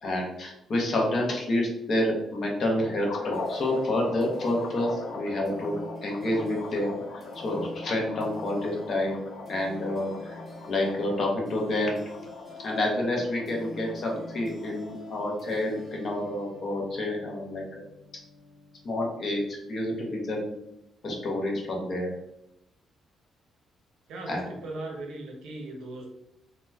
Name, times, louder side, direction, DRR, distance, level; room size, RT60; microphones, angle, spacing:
voice 1, 0.0-5.8 6.0-9.2 9.5-10.4 10.7-12.0 12.6-17.8 18.8-19.4 19.7-20.5 21.0-22.1 24.3-24.4, left 1 dB, 45° left, 0 dB, 0.9 m, -28 dB
sound 1, 3.0-15.3, left 3 dB, 85° left, 0.5 m, -41 dB
sound 2, 3.3-19.9, left 2 dB, 25° left, 1.2 m, -46 dB
voice 2, 24.1-26.1, right 2 dB, 85° right, 1 dB, 0.8 m, -38 dB
2.9 x 2.1 x 3.4 m, 0.80 s
cardioid pair, 145°, 0 cm